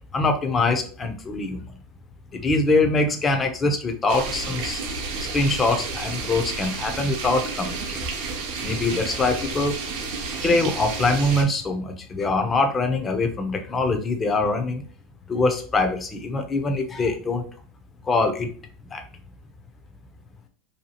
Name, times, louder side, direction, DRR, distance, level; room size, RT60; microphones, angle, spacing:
voice 1, 0.1-1.6 2.3-4.8 5.2-8.0 8.6-9.8 10.4-14.8 15.3-17.4 18.0-18.5 18.9-19.0, left 2 dB, 25° left, 5 dB, 0.5 m, -23 dB
sound 1, 4.1-11.4, right 4 dB, 70° right, 0.7 m, -31 dB
2.7 x 2.3 x 2.7 m, 0.43 s
supercardioid pair, 115°, 0 cm